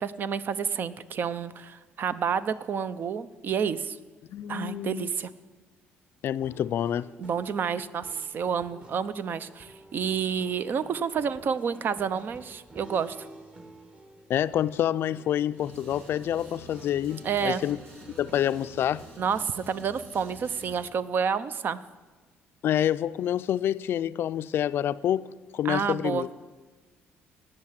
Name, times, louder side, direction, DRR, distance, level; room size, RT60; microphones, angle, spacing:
voice 1, 0.0-4.0 4.5-5.3 7.2-13.2 17.2-17.6 19.2-21.8 25.6-26.3, right 7 dB, 50° right, 0.6 m, -29 dB
voice 2, 4.3-5.1 6.2-7.1 14.3-17.8 18.2-19.0 22.6-25.3 25.5-26.3, left 11 dB, 60° left, 0.4 m, -27 dB
sound 1, 6.4-19.1, right 1 dB, 25° right, 1.6 m, -51 dB
sound 2, 15.6-20.8, right 1 dB, 75° right, 4.3 m, -49 dB
18.5 x 6.6 x 7.4 m
cardioid pair, 110°, 4 cm